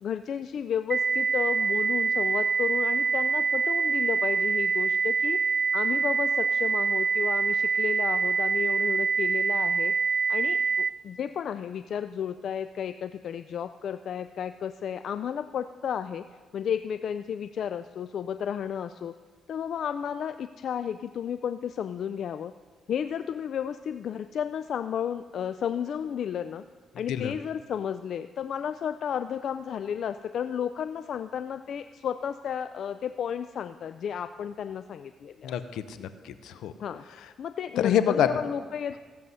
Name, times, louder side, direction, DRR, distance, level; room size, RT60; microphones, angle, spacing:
voice 1, 0.0-5.4 5.7-9.9 10.3-16.2 16.5-19.1 19.5-22.5 22.9-26.6 27.0-35.5 36.8-37.0 37.4-39.0, left 8 dB, 65° left, 11 dB, 0.3 m, -32 dB
sound 1, 0.9-10.9, right 5 dB, 35° right, 0.3 m, -25 dB
voice 2, 35.4-36.7 37.8-38.3, left 10 dB, 85° left, 11 dB, 0.7 m, -27 dB
15.5 x 7.7 x 5.5 m, 1.5 s
cardioid pair, 90°, 0 cm